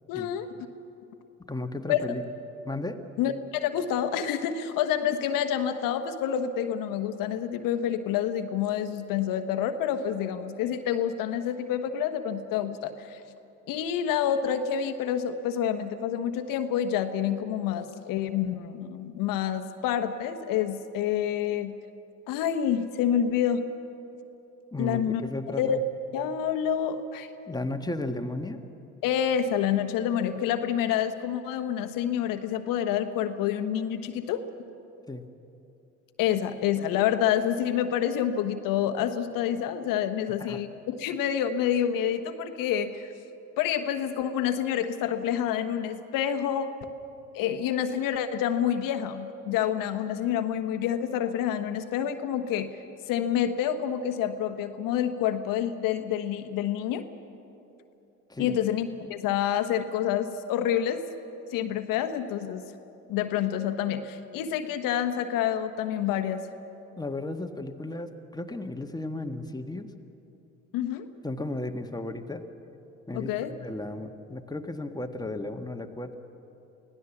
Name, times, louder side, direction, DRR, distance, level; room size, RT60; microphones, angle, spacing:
voice 1, 0.1-0.5 1.9-2.1 3.2-13.2 13.7-21.8 22.3-23.6 24.8-25.2 25.6-25.8 26.1-27.3 29.0-34.5 36.2-43.1 43.6-46.7 47.3-52.8 53.1-57.1 58.4-61.1 61.5-62.6 63.1-66.4 70.7-71.1 73.1-73.5, left 9 dB, 65° left, 8 dB, 1.3 m, -28 dB
voice 2, 1.5-2.2 2.6-3.0 24.7-25.8 27.5-28.6 35.1-35.3 40.4-40.6 58.3-58.6 67.0-69.9 71.2-72.5 73.1-76.1, left 2 dB, 10° left, 5 dB, 1.6 m, -34 dB
24.5 x 17.0 x 7.2 m, 2.8 s
hypercardioid pair, 60°, 36 cm